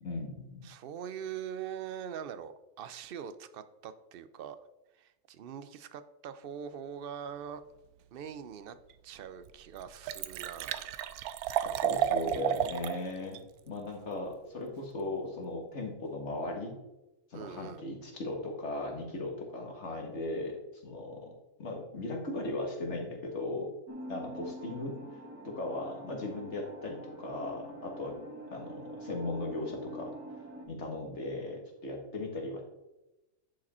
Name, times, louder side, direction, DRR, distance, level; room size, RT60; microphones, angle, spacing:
voice 1, 0.0-0.6 11.8-16.8 17.3-21.3 21.6-23.7 24.1-25.0 25.4-28.2 28.5-30.1 30.7-32.6, left 2 dB, 50° left, 1 dB, 1.9 m, -37 dB
voice 2, 0.6-4.6 5.0-7.6 8.1-8.8 9.0-10.9 17.3-17.8, right 8 dB, 60° right, 12 dB, 0.6 m, -42 dB
Liquid, 8.9-9.0 9.5-9.6 9.8-13.0 13.3-13.4, right 10 dB, 90° right, 1.1 m, -32 dB
sound 1, 23.9-30.7, right 1 dB, 10° right, 1.5 m, -45 dB
10.0 x 5.0 x 4.3 m, 0.97 s
omnidirectional pair, 1.5 m